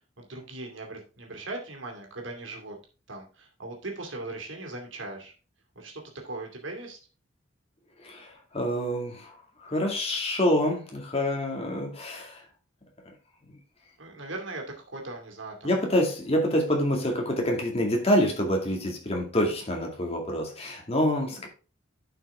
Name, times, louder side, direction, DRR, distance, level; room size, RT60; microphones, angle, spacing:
voice 1, 0.2-2.8 3.1-5.3 5.7-7.0 14.0-15.7, right 2 dB, 70° right, 2.5 m, -39 dB
voice 2, 8.0-12.4 13.1-13.2 15.6-21.5, equal, 30° left, 2.2 m, -27 dB
11.0 x 5.8 x 3.6 m
head